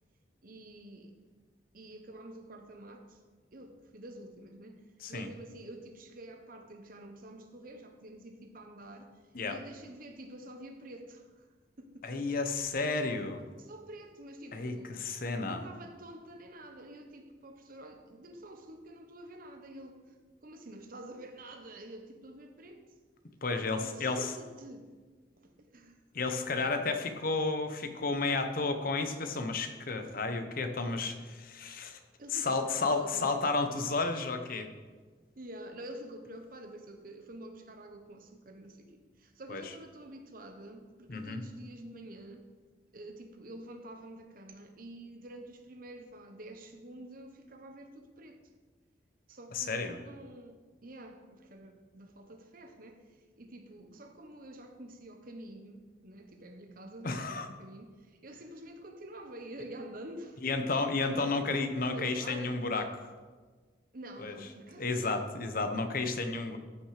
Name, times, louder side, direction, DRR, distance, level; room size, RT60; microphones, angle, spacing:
voice 1, 0.4-1.1 1.7-3.2 3.5-4.8 5.1-9.1 9.4-11.4 11.8-12.4 13.6-15.1 15.4-22.8 23.8-24.9 25.4-26.0 32.2-33.3 35.4-42.4 42.9-48.4 49.3-53.0 53.4-60.4 61.8-62.6 63.9-65.2, right 1 dB, 55° right, 5 dB, 1.2 m, -48 dB
voice 2, 12.0-13.4 14.5-15.6 23.4-24.3 26.1-32.0 32.3-34.7 39.5-39.7 41.1-41.4 49.5-50.0 57.0-57.5 60.4-63.1 64.2-64.4 64.8-66.6, left 3 dB, 55° left, 7 dB, 1.0 m, -32 dB
14.0 x 6.2 x 5.0 m, 1.4 s
head